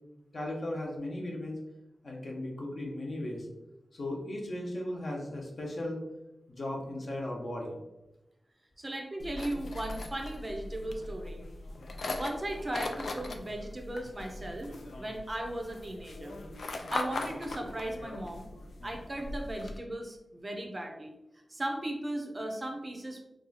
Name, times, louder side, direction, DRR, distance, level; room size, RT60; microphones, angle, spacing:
voice 1, 0.3-1.6 2.0-3.5 3.9-6.0 6.5-7.7, left 1 dB, 55° left, -1 dB, 0.8 m, -36 dB
voice 2, 8.8-11.4 12.2-14.7 15.0-16.4 16.9-18.5 18.8-23.2, right 1 dB, 30° right, 2 dB, 0.5 m, -37 dB
sound 1, 9.2-19.8, left 2 dB, 75° left, 0.3 m, -40 dB
2.7 x 2.3 x 4.0 m, 0.94 s
wide cardioid pair, 105°, 0 cm